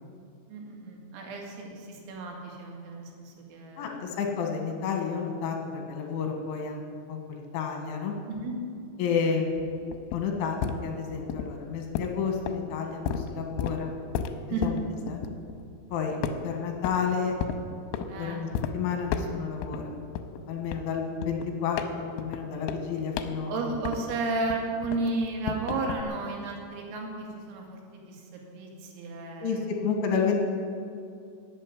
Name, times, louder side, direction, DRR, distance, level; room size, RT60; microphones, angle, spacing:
voice 1, 0.5-4.0 8.3-8.6 14.5-14.6 16.1-16.2 18.1-18.4 23.5-29.7, right 3 dB, 85° right, 0 dB, 4.9 m, -33 dB
voice 2, 3.8-6.8 7.1-8.1 9.0-9.7 10.1-13.9 14.6-14.8 15.1-15.2 15.9-16.2 16.4-17.3 18.2-19.9 20.5-23.7 29.4-30.4, left 6 dB, 75° left, 2 dB, 3.8 m, -30 dB
sound 1, 9.5-15.9 16.2-17.1 17.4-18.1 18.5-18.7 19.1-19.8 20.2-24.2 24.5-26.0, left 7 dB, 90° left, 3.3 m, -33 dB
14.0 x 8.2 x 9.7 m, 2.4 s
omnidirectional pair, 5.9 m